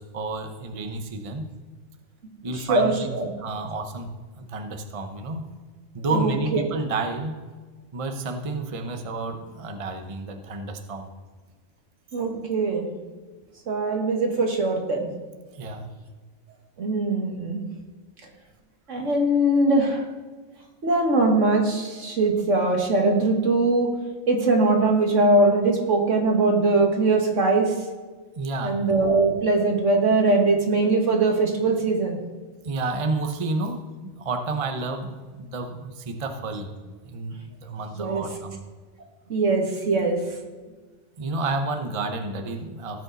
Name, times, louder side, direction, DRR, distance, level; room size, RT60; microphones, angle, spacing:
voice 1, 0.0-1.5 2.4-3.1 3.4-5.4 5.9-7.5 7.9-11.1 15.5-15.9 28.4-28.9 32.6-38.6 41.2-43.0, right 3 dB, 30° right, 5 dB, 0.8 m, -30 dB
voice 2, 2.7-3.3 6.1-6.6 12.1-12.9 13.7-15.1 16.8-17.6 18.9-20.1 20.8-23.9 24.3-27.7 28.6-32.2 38.0-38.3 39.3-40.2, right 2 dB, 80° right, 1 dB, 2.0 m, -21 dB
17.0 x 6.7 x 4.0 m, 1.4 s
omnidirectional pair, 1.3 m